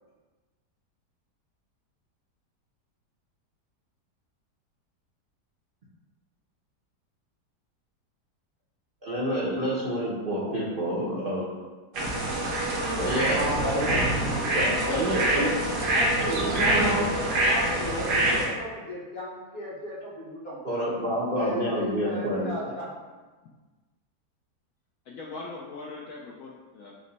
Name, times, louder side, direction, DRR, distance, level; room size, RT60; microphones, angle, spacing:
voice 1, 9.0-11.6 13.0-14.1 14.5-15.5 20.6-22.5, equal, 50° right, -9 dB, 0.6 m, -28 dB
voice 2, 10.3-10.6 13.8-14.1 15.8-20.6 21.3-22.9, equal, 45° left, -6 dB, 1.0 m, -36 dB
sound 1, 11.9-18.5, right 1 dB, 80° right, 1.5 m, -25 dB
voice 3, 25.1-26.9, left 3 dB, 70° left, -4 dB, 0.8 m, -40 dB
5.1 x 2.1 x 3.9 m, 1.3 s
omnidirectional pair, 1.8 m